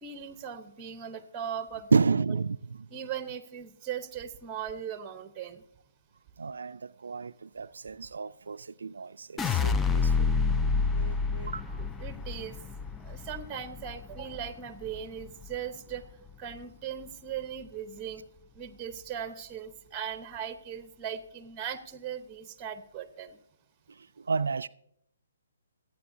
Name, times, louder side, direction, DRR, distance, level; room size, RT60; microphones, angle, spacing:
voice 1, 0.0-2.0 2.9-5.7 11.8-12.6 13.0-16.1 16.4-18.3 18.5-23.4, right 8 dB, 20° right, 0.9 m, -39 dB
voice 2, 1.9-2.9 6.4-10.3 10.9-11.8 24.2-24.7, right 4 dB, 75° right, 0.3 m, -31 dB
sound 1, 9.4-15.6 15.9-16.5, left 5 dB, 10° left, 0.4 m, -29 dB
26.0 x 8.8 x 2.7 m
hypercardioid pair, 145°, 0 cm